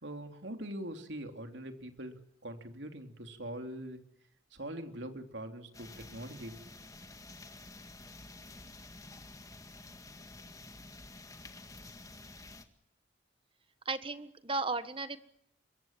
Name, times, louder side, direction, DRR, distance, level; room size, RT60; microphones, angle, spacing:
voice 1, 0.0-4.0 4.5-6.7, right 1 dB, 70° right, 6 dB, 3.3 m, -43 dB
sound 1, 5.7-12.6, left 2 dB, 15° left, 1.9 m, -50 dB
voice 2, 13.8-15.2, right 3 dB, 25° right, 12 dB, 1.5 m, -35 dB
26.0 x 23.0 x 7.5 m, 0.74 s
head